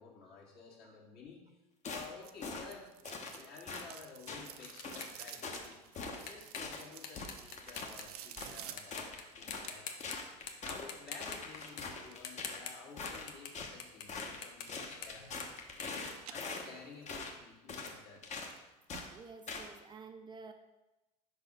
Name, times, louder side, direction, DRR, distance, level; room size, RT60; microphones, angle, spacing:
voice 1, 0.0-1.6 1.9-2.9 3.3-5.8 6.2-10.0 10.6-15.4 16.3-18.2, left 5 dB, 55° left, -3 dB, 2.0 m, -53 dB
sound 1, 1.8-2.1 2.4-2.7 3.0-3.4 3.7-3.9 4.3-4.5 4.8-5.1 5.4-5.7 5.9-6.2 6.5-6.8 7.1-7.9 8.4-8.5 8.9-9.7 10.0-10.9 11.2-12.6 13.0-13.7 14.1-14.4 14.7-16.7 17.1-17.3 17.7-18.0 18.2-18.5 18.9-19.1 19.5-19.7, left 4 dB, 35° left, 0.9 m, -42 dB
sound 2, 2.2-10.0 10.6-12.3 14.2-14.7 15.1-15.9 16.2-17.0 17.4-17.5 18.2-18.3 18.6-18.7 18.9-19.0 19.4-19.5, right 10 dB, 80° right, 0.5 m, -52 dB
sound 3, 3.6-8.4 8.8-9.2 9.5-10.2 10.5-13.5 13.8-16.8, left 7 dB, 70° left, 0.8 m, -47 dB
voice 2, 19.1-20.5, right 4 dB, 25° right, 6 dB, 0.4 m, -51 dB
4.9 x 4.0 x 5.4 m, 1.0 s
hypercardioid pair, 85°, 19 cm